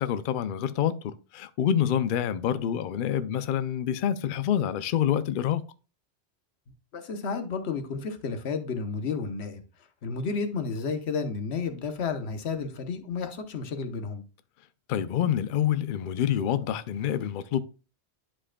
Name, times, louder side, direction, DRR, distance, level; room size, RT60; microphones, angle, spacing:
voice 1, 0.0-5.6 14.9-17.6, left 9 dB, 60° left, 0.6 m, -27 dB
voice 2, 6.9-9.6 10.0-14.2, left 5 dB, 75° left, 1.2 m, -31 dB
11.0 x 4.9 x 2.2 m
omnidirectional pair, 1.1 m